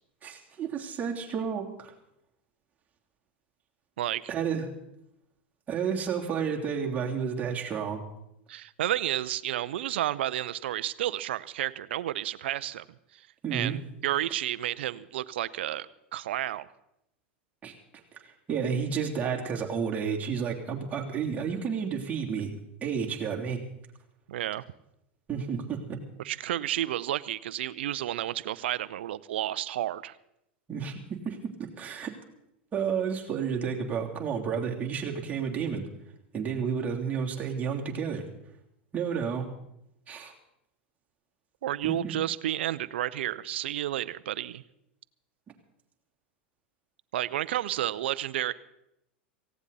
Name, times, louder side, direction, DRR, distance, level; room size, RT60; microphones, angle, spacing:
voice 1, 0.2-1.9 4.3-4.7 5.7-8.0 13.4-13.8 17.6-17.7 18.2-22.5 22.8-23.6 25.3-26.0 30.7-32.1 32.7-35.9 36.3-38.2 38.9-39.5 40.1-40.3 41.8-42.1, right 6 dB, 25° right, -1 dB, 3.2 m, -31 dB
voice 2, 8.5-12.8 13.1-13.2 13.5-16.7 24.3-24.6 26.2-30.2 41.6-44.6 47.1-48.5, right 13 dB, 70° right, 17 dB, 0.6 m, -31 dB
18.0 x 16.5 x 4.2 m, 0.82 s
hypercardioid pair, 100°, 6 cm